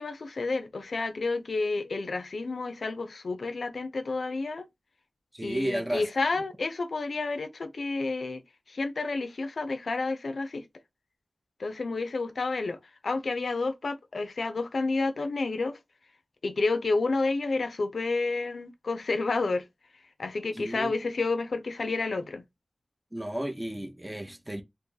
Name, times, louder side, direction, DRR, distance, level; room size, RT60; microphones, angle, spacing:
voice 1, 0.0-4.7 5.4-8.4 8.7-10.6 11.6-15.8 16.4-19.6 20.2-22.4, left 3 dB, 80° left, 0.5 m, -30 dB
voice 2, 5.3-6.0 20.6-20.9 23.1-24.6, right 1 dB, 15° right, 0.5 m, -33 dB
2.7 x 2.5 x 3.7 m
wide cardioid pair, 85°, 0 cm